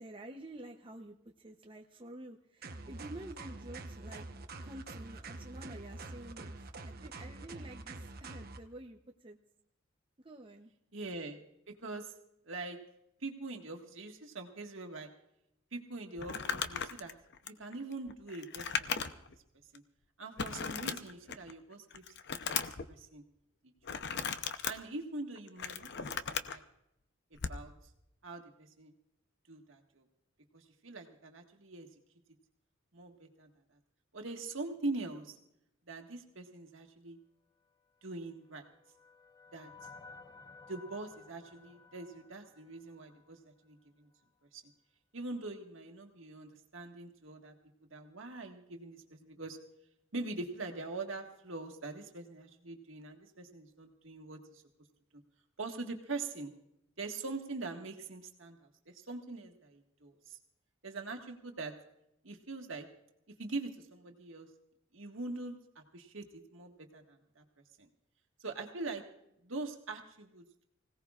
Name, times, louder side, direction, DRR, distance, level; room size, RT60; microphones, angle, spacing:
voice 1, 0.0-4.2 4.6-6.5 6.9-9.4 10.2-10.7, right 1 dB, 25° right, 2 dB, 0.8 m, -49 dB
sound 1, 2.6-8.6, right 2 dB, 50° right, 1.0 m, -46 dB
voice 2, 10.9-11.4 11.7-12.1 12.4-12.8 13.2-15.1 15.7-17.1 17.5-19.2 19.7-19.8 20.2-22.0 22.3-23.2 23.9-24.0 24.6-25.9 26.5-26.6 27.5-27.7 28.2-28.9 29.5-30.0 30.5-31.9 32.9-33.5 34.1-35.4 35.9-37.2 38.0-38.6 39.5-39.7 40.7-44.1 44.5-44.6 45.1-47.5 47.8-49.6 50.1-54.6 55.6-56.5 57.0-60.4 60.8-61.7 62.2-62.9 63.4-64.5 64.9-67.4 67.8-67.9 68.4-69.0 69.4-70.6, right 3 dB, 70° right, 3 dB, 1.7 m, -43 dB
Crumpling crinkling, 16.2-19.4 19.7-19.8 20.4-21.5 21.9-22.9 23.8-24.7 25.4-26.6 27.4-27.6, left 6 dB, 55° left, 0.7 m, -37 dB
sound 2, 38.1-43.5, left 4 dB, 20° left, 0.7 m, -56 dB
25.0 x 17.0 x 2.4 m, 0.80 s
head